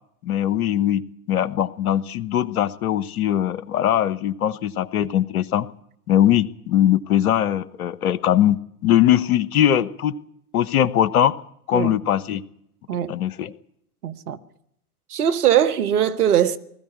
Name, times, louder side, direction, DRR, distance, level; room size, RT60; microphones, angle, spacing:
voice 1, 0.2-1.0 1.3-5.7 6.1-10.1 10.5-11.3 11.7-12.4 13.1-13.5, left 11 dB, 65° left, 1.1 m, -20 dB
voice 2, 14.0-14.4 15.1-16.6, right 10 dB, 65° right, 1.4 m, -20 dB
20.5 x 14.5 x 9.6 m
figure-of-eight pair, 90°, 47 cm